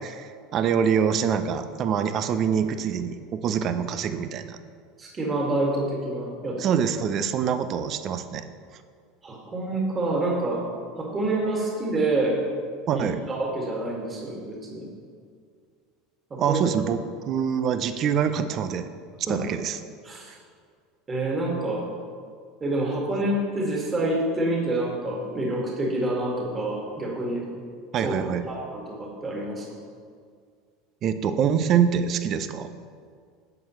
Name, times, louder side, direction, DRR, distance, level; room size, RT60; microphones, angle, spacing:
voice 1, 0.0-4.6 6.6-8.4 12.9-13.2 16.4-18.9 19.3-19.8 27.9-28.5 31.0-32.7, right 7 dB, 45° right, 10 dB, 0.6 m, -25 dB
voice 2, 5.0-6.7 9.2-10.6 11.0-12.4 12.9-14.9 16.3-16.6 19.3-19.4 20.0-20.3 21.1-21.9 22.6-27.5 28.0-28.1 28.5-29.7, right 2 dB, 25° right, -2 dB, 2.1 m, -27 dB
10.5 x 7.4 x 3.1 m, 2.1 s
hypercardioid pair, 90°, 0 cm